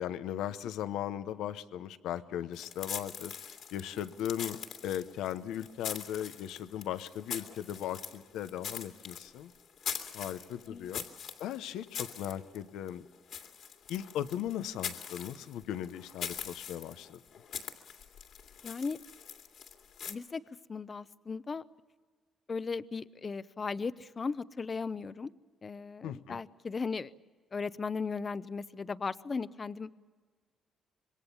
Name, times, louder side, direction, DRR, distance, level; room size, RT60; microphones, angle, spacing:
voice 1, 0.0-3.3 3.7-9.5 10.1-11.0 11.4-13.0 13.9-17.2 26.0-26.4, left 11 dB, 90° left, 11 dB, 0.8 m, -37 dB
sound 1, 2.5-20.1, left 7 dB, 70° left, 2.5 m, -43 dB
voice 2, 18.6-19.0 20.1-20.4 20.7-21.6 22.5-25.3 25.6-27.1 27.5-29.9, left 4 dB, 35° left, 15 dB, 0.7 m, -37 dB
26.5 x 22.0 x 7.2 m, 1.5 s
cardioid pair, 90°, 0 cm